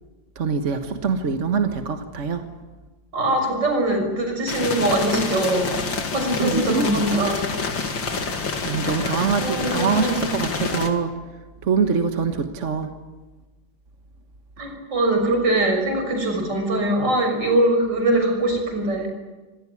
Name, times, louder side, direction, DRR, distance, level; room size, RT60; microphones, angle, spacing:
voice 1, 0.3-2.5 6.4-7.3 8.6-11.1 11.6-12.9, right 5 dB, 45° right, 6 dB, 1.6 m, -24 dB
voice 2, 3.1-5.8 6.1-7.5 9.4-10.3 14.6-19.1, right 1 dB, 70° right, 4 dB, 6.9 m, -22 dB
sound 1, 4.5-10.9, left 4 dB, 90° left, 3.1 m, -27 dB
26.5 x 19.0 x 9.7 m, 1.2 s
omnidirectional pair, 2.0 m